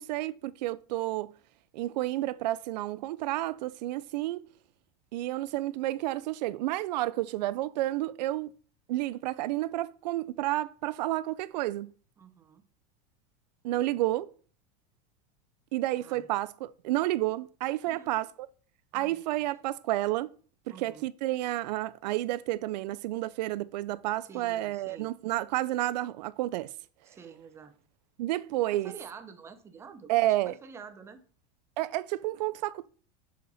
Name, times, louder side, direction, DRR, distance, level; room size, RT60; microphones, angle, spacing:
voice 1, 0.0-1.3 1.7-4.4 5.1-8.5 8.9-11.9 13.6-14.3 15.7-18.3 18.9-20.3 20.7-26.7 28.2-28.9 30.1-30.5 31.8-32.9, right 16 dB, 85° right, 0.4 m, -30 dB
voice 2, 12.2-12.6 16.0-16.3 17.9-18.1 18.9-19.2 20.7-21.1 24.2-25.1 27.0-27.8 28.7-30.1 30.5-31.2, right 6 dB, 10° right, 0.5 m, -48 dB
6.6 x 4.1 x 4.0 m
supercardioid pair, 160°, 21 cm